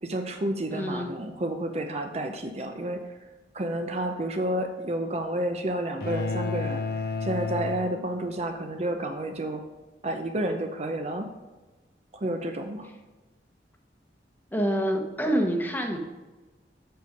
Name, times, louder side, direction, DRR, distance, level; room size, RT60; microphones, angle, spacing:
voice 1, 0.0-3.2 3.5-9.6 10.0-11.3 12.1-12.9, right 1 dB, 35° right, 5 dB, 0.6 m, -30 dB
voice 2, 0.7-1.1 14.5-16.0, equal, 10° left, 3 dB, 1.1 m, -26 dB
sound 1, 6.0-8.6, left 4 dB, 55° left, 0.6 m, -31 dB
7.9 x 6.9 x 5.2 m, 1.2 s
head